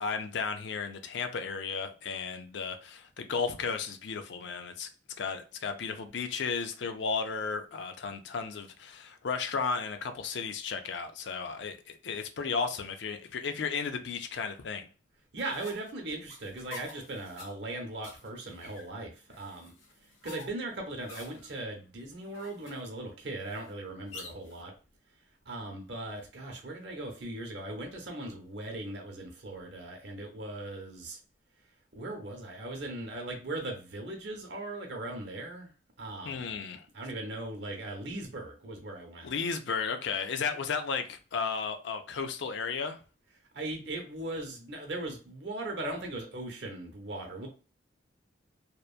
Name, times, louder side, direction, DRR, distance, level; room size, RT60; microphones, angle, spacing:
voice 1, 0.0-4.9 5.2-14.9 36.3-36.9 39.2-43.0, left 5 dB, 65° left, 0.4 m, -34 dB
voice 2, 15.3-19.7 20.2-24.7 25.5-31.2 31.9-35.7 36.0-36.7 36.9-39.3 43.5-47.5, right 2 dB, 60° right, 0.7 m, -39 dB
sound 1, 15.4-24.6, left 3 dB, 85° left, 0.9 m, -50 dB
2.9 x 2.2 x 2.3 m
head